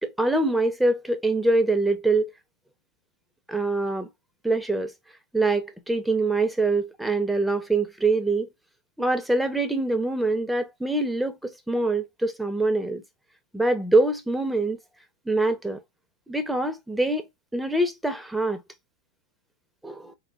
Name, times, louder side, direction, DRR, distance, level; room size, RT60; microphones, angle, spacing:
voice 1, 0.0-2.3 3.5-4.1 4.4-4.9 5.3-8.5 9.0-13.0 13.5-14.8 15.3-15.8 16.3-17.3 17.5-18.6 19.8-20.1, right 2 dB, 5° right, 0.9 m, -24 dB
4.2 x 3.5 x 3.2 m
figure-of-eight pair, 90°, 0 cm